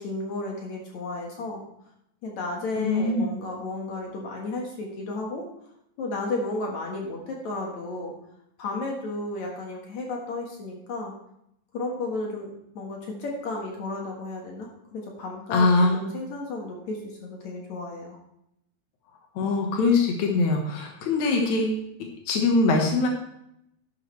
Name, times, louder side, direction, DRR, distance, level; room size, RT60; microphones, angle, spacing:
voice 1, 0.0-1.6 2.2-5.4 6.0-8.1 8.6-11.1 11.7-18.2, left 2 dB, 60° left, -1 dB, 1.9 m, -33 dB
voice 2, 2.8-3.3 15.5-16.0 19.3-21.8 22.3-23.1, left 3 dB, 80° left, 2 dB, 1.6 m, -22 dB
11.0 x 10.5 x 3.2 m, 0.78 s
omnidirectional pair, 5.3 m